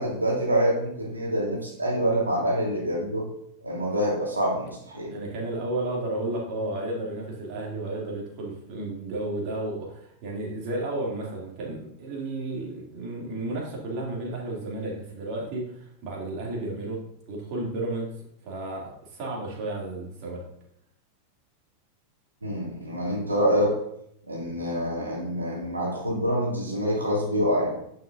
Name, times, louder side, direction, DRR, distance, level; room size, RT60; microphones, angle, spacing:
voice 1, 0.0-3.3 3.6-5.1 22.4-23.8 24.3-27.7, equal, 80° right, -3 dB, 2.1 m, -26 dB
voice 2, 5.1-17.0 17.3-18.1 18.4-20.4, right 2 dB, 40° right, -3 dB, 2.6 m, -32 dB
10.5 x 6.6 x 2.6 m, 0.73 s
figure-of-eight pair, 90°, 0 cm